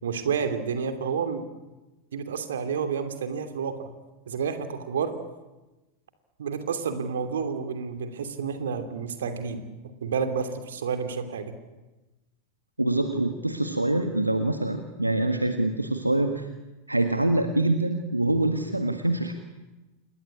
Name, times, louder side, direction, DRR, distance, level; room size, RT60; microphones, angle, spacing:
voice 1, 0.0-1.4 2.1-3.9 4.3-5.1 6.4-9.6 10.0-11.5, right 6 dB, 65° right, 8 dB, 3.0 m, -30 dB
voice 2, 12.8-16.5 16.9-19.3, right 2 dB, 85° right, 6 dB, 1.7 m, -25 dB
28.5 x 21.5 x 8.8 m, 1.1 s
figure-of-eight pair, 90°, 0 cm